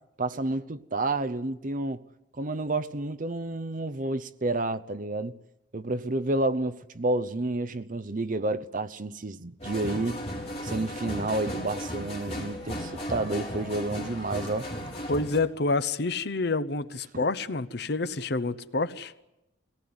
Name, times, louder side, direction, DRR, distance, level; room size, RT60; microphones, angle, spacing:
voice 1, 0.2-2.0 2.4-5.3 5.7-10.2 10.6-14.7 17.1-17.2, right 2 dB, 45° right, 0.8 m, -30 dB
sound 1, 9.6-15.4, equal, 35° left, 4.2 m, -35 dB
voice 2, 15.1-19.1, left 3 dB, 60° left, 0.9 m, -28 dB
22.0 x 18.0 x 9.6 m
head